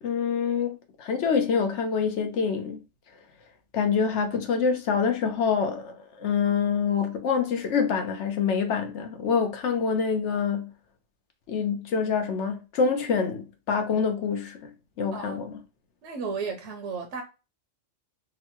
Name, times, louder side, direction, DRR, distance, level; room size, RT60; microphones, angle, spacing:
voice 1, 0.0-2.8 3.7-10.7 11.5-14.6 15.0-15.5, left 6 dB, 65° left, 1.1 m, -26 dB
voice 2, 15.1-15.4 16.0-17.2, right 5 dB, 70° right, 0.9 m, -34 dB
3.7 x 2.2 x 2.8 m
omnidirectional pair, 1.3 m